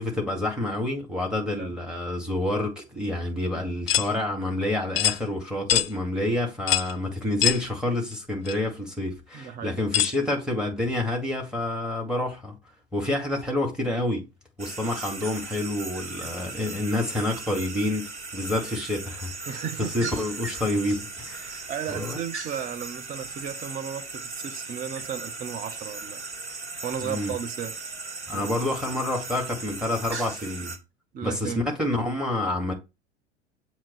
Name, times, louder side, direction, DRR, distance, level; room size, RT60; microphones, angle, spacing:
voice 1, 0.0-12.5 12.9-14.2 14.6-18.1 18.3-19.6 19.9-22.2 27.0-27.3 28.3-30.8 31.2-32.7, left 1 dB, ahead, 2.1 m, -28 dB
sound 1, 3.9-4.1 5.0-5.2 5.7-5.9 6.7-6.9 7.4-7.6 8.5-8.6 9.9-10.2, left 12 dB, 60° left, 0.4 m, -23 dB
voice 2, 9.3-9.8 19.5-19.9 21.7-26.2 26.8-27.8 28.3-28.7 31.1-31.7, right 8 dB, 25° right, 0.6 m, -34 dB
sound 2, 14.6-30.8, right 3 dB, 80° right, 1.1 m, -37 dB
7.3 x 2.9 x 4.6 m
figure-of-eight pair, 75°, 33 cm